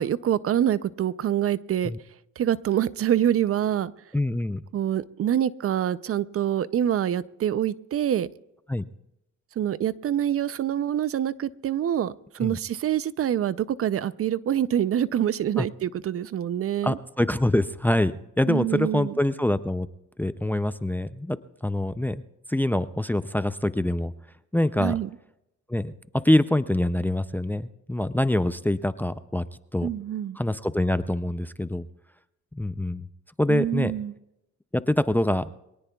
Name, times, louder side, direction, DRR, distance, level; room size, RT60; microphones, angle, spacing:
voice 1, 0.0-1.9 2.4-3.9 4.7-8.3 9.6-17.0 18.5-19.1 24.8-25.1 29.8-30.4 33.5-34.1, right 10 dB, 50° right, 17 dB, 0.5 m, -26 dB
voice 2, 4.1-4.6 8.7-8.9 12.4-12.6 15.6-15.7 16.8-19.9 20.2-22.2 22.5-24.1 24.5-24.9 25.7-25.9 26.2-29.4 29.7-29.9 30.4-31.9 32.6-33.1 33.4-33.9 34.7-35.5, left 1 dB, 5° left, 14 dB, 0.4 m, -25 dB
24.0 x 18.0 x 2.3 m, 0.86 s
cardioid pair, 90°, 30 cm